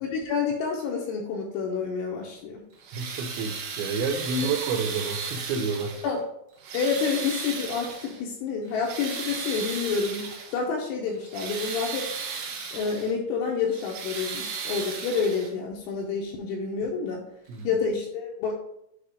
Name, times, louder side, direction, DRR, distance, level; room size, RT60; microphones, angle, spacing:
voice 1, 0.0-2.6 4.4-4.5 6.0-6.2 6.7-12.1 12.7-17.2 17.6-18.5, left 5 dB, 80° left, -2 dB, 3.0 m, -28 dB
sound 1, 2.7-6.2 6.6-8.2 8.7-10.6 11.1-13.1 13.6-15.7 16.8-16.9 17.5-17.6, right 5 dB, 70° right, 2.6 m, -35 dB
voice 2, 2.9-6.0 17.5-17.7, right 4 dB, 85° right, 3 dB, 2.5 m, -29 dB
8.1 x 2.9 x 4.9 m, 0.80 s
omnidirectional pair, 6.0 m